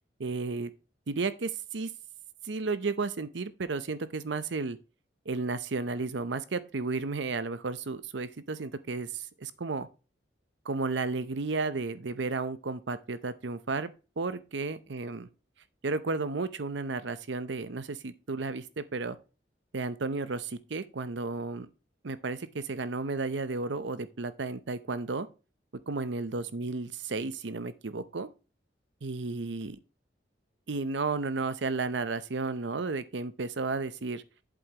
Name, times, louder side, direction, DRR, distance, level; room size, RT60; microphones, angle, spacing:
voice 1, 0.2-0.7 1.1-1.9 2.4-4.8 5.3-9.9 10.6-13.9 14.2-15.3 15.8-19.2 19.7-21.7 22.0-25.3 25.9-28.3 29.0-29.8 30.7-34.2, right 3 dB, 75° right, 0.7 m, -33 dB
8.0 x 7.8 x 2.9 m
head